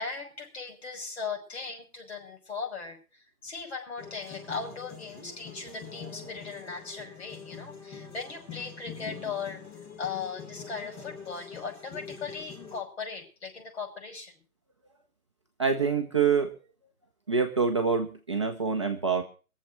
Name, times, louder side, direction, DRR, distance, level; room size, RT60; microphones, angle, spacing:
voice 1, 0.0-9.6 10.0-14.3, left 5 dB, 45° left, 2 dB, 6.1 m, -38 dB
sound 1, 4.0-12.8, left 5 dB, 15° left, 1.6 m, -44 dB
voice 2, 15.6-16.5 17.3-19.2, right 5 dB, 20° right, 2 dB, 0.7 m, -26 dB
22.5 x 7.5 x 6.5 m, 0.37 s
figure-of-eight pair, 145°, 44 cm